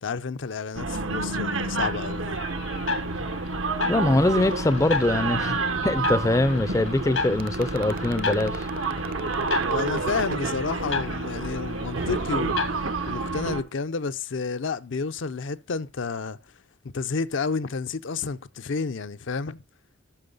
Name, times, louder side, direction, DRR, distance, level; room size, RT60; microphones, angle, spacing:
voice 1, 0.0-2.4 9.6-12.8 13.1-16.4 16.8-19.6, left 4 dB, 70° left, 0.5 m, -30 dB
sound 1, 0.7-13.6, right 3 dB, 90° right, 1.2 m, -29 dB
sound 2, 1.6-13.5, left 4 dB, 90° left, 1.9 m, -34 dB
voice 2, 3.9-5.6 5.8-8.7, left 2 dB, 15° left, 0.4 m, -23 dB
sound 3, 7.4-10.6 11.9-13.3, right 4 dB, 45° right, 0.4 m, -36 dB
13.0 x 6.3 x 3.9 m
head